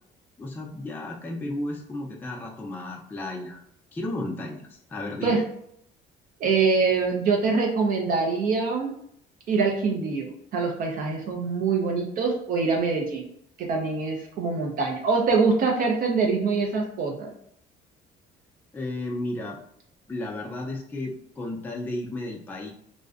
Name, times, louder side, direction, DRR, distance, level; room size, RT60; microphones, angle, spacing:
voice 1, 0.4-3.6 3.9-5.4 18.7-19.6 20.1-22.7, left 1 dB, 10° left, -1 dB, 0.3 m, -33 dB
voice 2, 6.4-8.9 9.5-13.2 13.6-17.3, right 4 dB, 55° right, 1 dB, 0.5 m, -24 dB
2.5 x 2.0 x 2.4 m, 0.69 s
cardioid pair, 110°, 17 cm